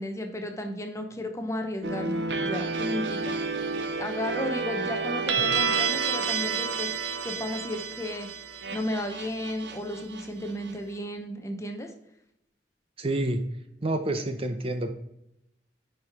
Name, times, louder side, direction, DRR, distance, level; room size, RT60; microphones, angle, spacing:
voice 1, 0.0-3.3 4.0-6.9 7.2-8.3 8.7-11.9, left 1 dB, 15° left, 5 dB, 0.9 m, -34 dB
sound 1, 1.8-10.7, right 5 dB, 80° right, 0.8 m, -30 dB
voice 2, 13.0-13.4 13.8-14.9, right 1 dB, 35° right, 7 dB, 0.6 m, -28 dB
9.3 x 4.7 x 3.6 m, 0.81 s
head